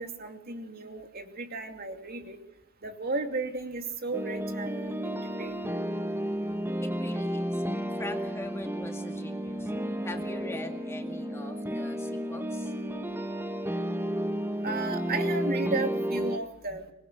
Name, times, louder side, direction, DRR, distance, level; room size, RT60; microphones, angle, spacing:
voice 1, 0.0-2.4 2.8-5.6 14.6-16.9, right 3 dB, 45° right, 5 dB, 2.6 m, -34 dB
sound 1, 4.1-16.4, equal, 10° right, 1.2 m, -32 dB
voice 2, 6.8-7.6 8.0-9.7 10.0-12.7, left 1 dB, 10° left, 4 dB, 2.0 m, -42 dB
24.5 x 21.0 x 8.1 m, 0.86 s
head